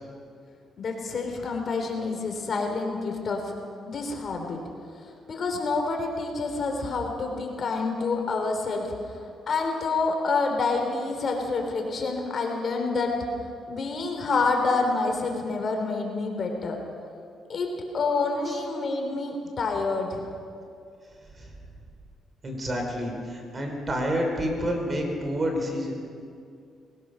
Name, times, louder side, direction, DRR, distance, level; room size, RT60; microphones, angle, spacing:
voice 1, 0.8-3.4 3.9-4.6 5.3-9.1 9.5-13.1 13.7-16.8 17.5-17.7 17.9-20.3, left 3 dB, 50° left, 3 dB, 3.7 m, -27 dB
voice 2, 21.2-21.5 22.4-25.9, equal, 35° right, 2 dB, 4.9 m, -29 dB
21.0 x 19.0 x 6.5 m, 2.3 s
cardioid pair, 90°, 0 cm